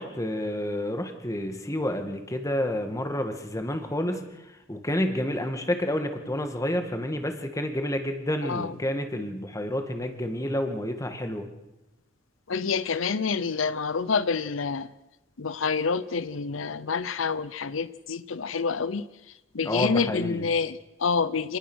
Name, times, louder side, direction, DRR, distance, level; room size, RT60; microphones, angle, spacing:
voice 1, 0.0-11.5 19.6-20.5, left 1 dB, 15° left, 2.0 m, -29 dB
voice 2, 12.5-14.9 15.4-19.0 19.5-21.6, left 5 dB, 90° left, 0.8 m, -27 dB
27.0 x 19.5 x 6.4 m
head